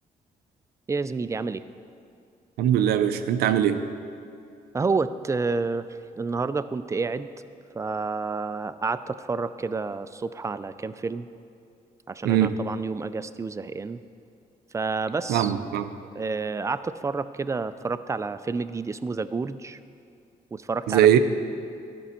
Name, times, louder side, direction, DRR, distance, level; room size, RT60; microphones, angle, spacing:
voice 1, 0.9-1.6 4.7-5.9 6.2-7.3 7.7-11.3 12.1-14.0 14.7-15.5 16.2-19.8 20.5-21.2, right 4 dB, 20° right, 12 dB, 0.3 m, -29 dB
voice 2, 2.6-3.8 12.2-12.6 15.3-15.9 20.9-21.2, right 10 dB, 90° right, 10 dB, 0.5 m, -21 dB
12.5 x 5.4 x 4.3 m, 2.4 s
cardioid pair, 70°, 16 cm